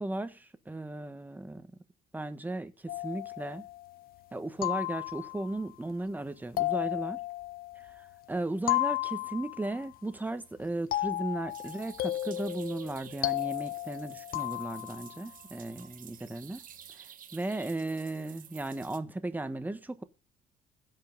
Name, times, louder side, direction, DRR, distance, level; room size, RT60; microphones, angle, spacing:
voice 1, 0.0-1.7 2.1-3.7 4.3-7.2 7.8-16.6 17.0-20.0, right 2 dB, 10° right, 1.4 m, -36 dB
sound 1, 2.9-4.0 4.6-5.6 6.6-8.1 8.7-9.8 10.9-15.2, left 16 dB, 60° left, 0.8 m, -34 dB
sound 2, 11.5-19.0, right 9 dB, 55° right, 1.4 m, -52 dB
16.5 x 5.7 x 6.8 m
cardioid pair, 110°, 17 cm